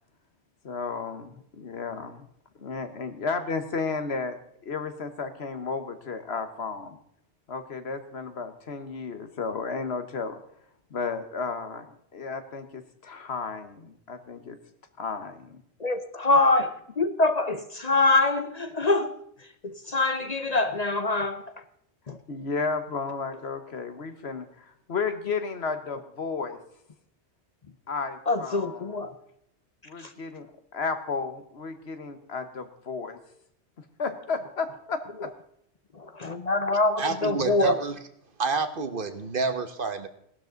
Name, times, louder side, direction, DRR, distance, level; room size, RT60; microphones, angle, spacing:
voice 1, 0.6-2.3 2.6-4.4 4.6-7.0 7.5-10.4 10.9-14.6 15.0-15.6 22.3-26.6 27.9-29.0 29.8-33.2 33.8-35.3, left 4 dB, 70° left, 9 dB, 1.5 m, -33 dB
voice 2, 15.8-19.1 19.6-21.4 22.1-22.2 28.3-29.1 30.0-30.1 36.0-37.8, left 2 dB, 40° left, 9 dB, 0.8 m, -24 dB
voice 3, 37.0-38.0 38.4-40.1, right 4 dB, 55° right, 10 dB, 1.2 m, -28 dB
16.5 x 12.0 x 3.9 m, 0.71 s
omnidirectional pair, 1.1 m